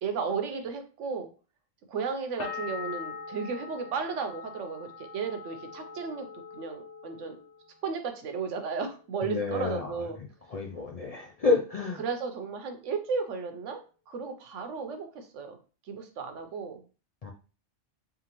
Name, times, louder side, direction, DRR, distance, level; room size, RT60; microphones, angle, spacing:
voice 1, 0.0-1.3 1.9-6.3 6.5-7.4 7.8-10.2 12.0-15.6 15.9-16.8, right 5 dB, 80° right, 7 dB, 1.1 m, -34 dB
sound 1, 2.4-8.0 8.3-9.1, left 5 dB, 70° left, 1.0 m, -43 dB
voice 2, 9.2-12.0 17.2-17.3, left 3 dB, 50° left, -1 dB, 0.4 m, -30 dB
3.7 x 3.5 x 3.0 m, 0.35 s
omnidirectional pair, 1.2 m